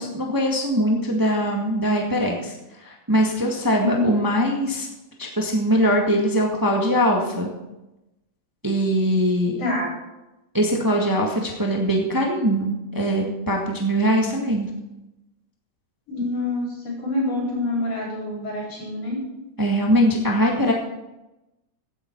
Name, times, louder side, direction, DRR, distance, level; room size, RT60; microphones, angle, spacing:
voice 1, 0.0-4.9 5.2-7.5 8.6-9.6 10.5-14.7 19.6-20.7, equal, 20° right, 0 dB, 0.5 m, -22 dB
voice 2, 3.8-4.1 9.6-9.9 16.1-19.2, left 2 dB, 45° left, -4 dB, 5.5 m, -26 dB
16.0 x 9.3 x 4.6 m, 0.97 s
omnidirectional pair, 3.8 m